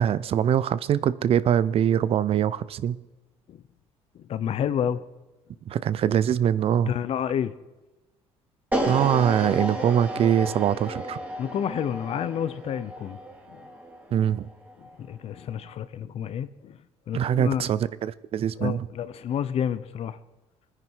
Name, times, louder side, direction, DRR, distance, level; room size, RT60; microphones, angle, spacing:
voice 1, 0.0-3.0 5.7-6.9 8.9-11.2 14.1-14.5 17.1-18.9, right 9 dB, 50° right, 0.6 m, -23 dB
voice 2, 4.3-5.0 6.9-7.5 11.4-13.2 13.5-13.6 15.0-16.8 17.1-17.7 18.6-20.2, left 9 dB, 55° left, 0.9 m, -29 dB
sound 1, 8.7-14.9, right 1 dB, 15° right, 3.4 m, -32 dB
21.0 x 10.0 x 4.7 m
cardioid pair, 90°, 12 cm